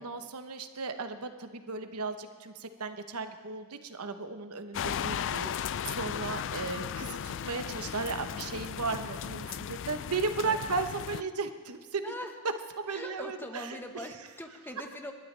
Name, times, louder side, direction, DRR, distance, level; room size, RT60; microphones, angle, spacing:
voice 1, 0.0-12.1 12.8-13.7, right 4 dB, 80° right, 8 dB, 1.0 m, -35 dB
sound 1, 4.7-11.2, left 8 dB, 55° left, 0.4 m, -36 dB
voice 2, 10.4-10.8 12.0-12.3 12.9-15.1, left 1 dB, 10° left, 4 dB, 1.2 m, -42 dB
29.0 x 12.5 x 3.4 m, 1.5 s
head